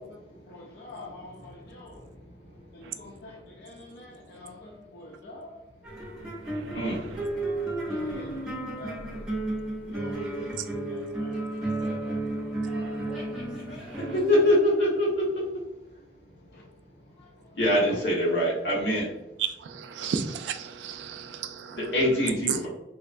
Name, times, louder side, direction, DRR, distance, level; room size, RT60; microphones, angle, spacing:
voice 1, 0.5-2.1 2.7-5.6 7.3-7.4 7.8-9.3 9.8-13.1 16.5-16.6 17.2-17.3 17.9-18.1, left 2 dB, 65° left, -2 dB, 0.4 m, -46 dB
sound 1, 5.8-14.5, right 2 dB, 5° right, 0.6 m, -33 dB
voice 2, 14.1-15.2 17.6-19.1 21.9-22.7, left 1 dB, 80° left, -6 dB, 1.3 m, -23 dB
voice 3, 19.7-21.8 22.5-22.7, right 7 dB, 90° right, 8 dB, 0.3 m, -32 dB
2.8 x 2.2 x 2.5 m, 0.94 s
head